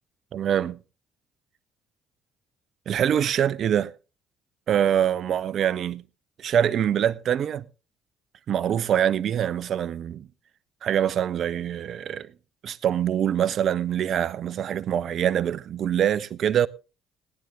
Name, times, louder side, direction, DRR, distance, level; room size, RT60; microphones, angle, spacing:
voice 1, 0.3-0.8 2.9-3.9 4.7-6.0 6.4-7.6 8.5-10.3 10.8-12.3 12.6-16.7, right 9 dB, 60° right, 0.7 m, -24 dB
17.0 x 10.5 x 3.7 m
hypercardioid pair, 55°, 0 cm